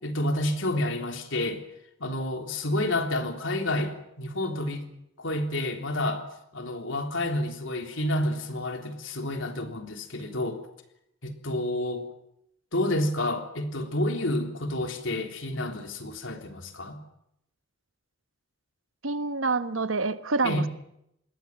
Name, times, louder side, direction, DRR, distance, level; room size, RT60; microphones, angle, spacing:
voice 1, 0.0-1.6 2.0-4.9 5.2-6.2 6.5-10.6 11.2-12.1 12.7-17.0 20.4-20.7, left 1 dB, 75° left, 3.6 m, -29 dB
voice 2, 19.0-20.7, right 3 dB, 85° right, 1.2 m, -27 dB
26.5 x 20.5 x 7.5 m
head